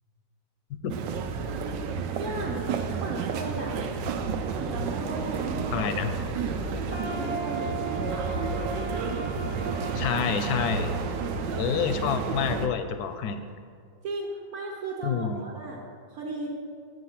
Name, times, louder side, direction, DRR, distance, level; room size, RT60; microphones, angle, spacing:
sound 1, 0.9-12.7, right 5 dB, 85° right, 1.3 m, -31 dB
voice 1, 2.2-2.7 3.0-3.8 4.5-6.2 6.7-8.3 14.0-15.8 16.1-16.6, right 3 dB, 60° right, -2 dB, 1.3 m, -36 dB
voice 2, 5.7-6.1 9.9-10.9 11.6-13.4 15.0-15.5, left 7 dB, 70° left, 9 dB, 1.0 m, -28 dB
sound 2, 6.9-12.8, right 2 dB, 40° left, 0.4 m, -39 dB
7.6 x 5.5 x 5.8 m, 2.2 s
omnidirectional pair, 1.9 m